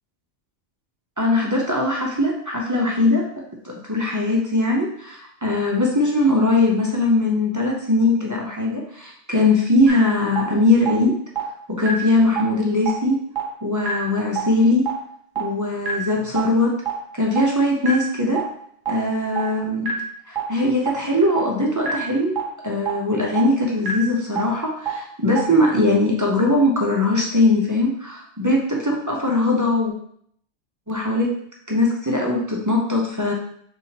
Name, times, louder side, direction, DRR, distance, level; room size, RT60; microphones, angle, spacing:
voice 1, 1.2-3.2 3.6-11.2 11.7-13.2 13.6-14.9 15.4-16.7 17.1-18.4 18.9-19.9 20.3-22.3 22.6-29.9 30.9-31.3 31.7-33.3, left 2 dB, 20° right, -2 dB, 0.6 m, -20 dB
sound 1, 9.9-10.0 10.4-10.5 10.9-11.0 11.4-11.5 11.8-11.9 12.4-12.5 12.9-13.0 13.4-13.5 13.8-13.9 14.4-14.5 14.9-15.0 15.4-15.5 15.8-15.9 16.4-16.5 16.9-17.0 17.4-17.5 17.8-17.9 18.4-18.5 18.9-19.0 19.4-19.5 19.8-19.9 20.4-20.5 20.9-21.0 21.4-21.5 21.8-21.9 22.4-22.5 22.9-23.0 23.4-23.5 23.8-23.9 24.4-24.5 24.9-25.0 25.4-25.5, right 9 dB, 50° right, 1.2 m, -23 dB
4.8 x 3.5 x 2.8 m, 0.65 s
omnidirectional pair, 1.1 m